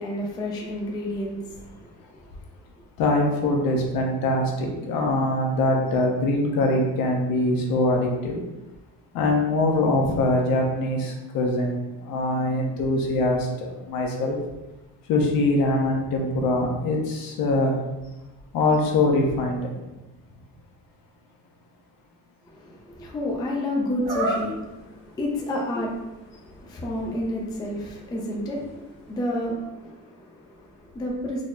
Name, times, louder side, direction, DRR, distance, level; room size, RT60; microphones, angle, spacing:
voice 1, 0.0-2.2 22.4-31.4, left 1 dB, 10° left, -1 dB, 0.3 m, -31 dB
voice 2, 3.0-8.4 9.1-14.4 15.0-17.8 18.5-19.7, left 2 dB, 70° left, 1 dB, 0.8 m, -23 dB
sound 1, 24.0-24.8 25.4-25.5 25.9-29.4, equal, 80° right, 1.2 m, -33 dB
4.0 x 2.0 x 3.5 m, 1.0 s
cardioid pair, 155°, 36 cm